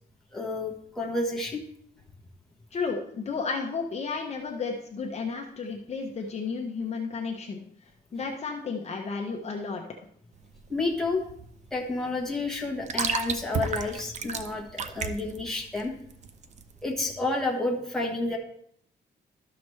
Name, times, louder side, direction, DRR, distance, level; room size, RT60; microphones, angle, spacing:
voice 1, 0.3-1.6 10.7-11.2 11.7-15.9 16.8-18.4, left 2 dB, ahead, -3 dB, 1.2 m, -30 dB
voice 2, 2.7-7.6 8.1-9.8, left 4 dB, 40° left, 1 dB, 0.8 m, -32 dB
sound 1, 10.3-17.0, right 5 dB, 40° right, 0.5 m, -34 dB
12.5 x 5.9 x 3.2 m, 0.67 s
wide cardioid pair, 175°, 18 cm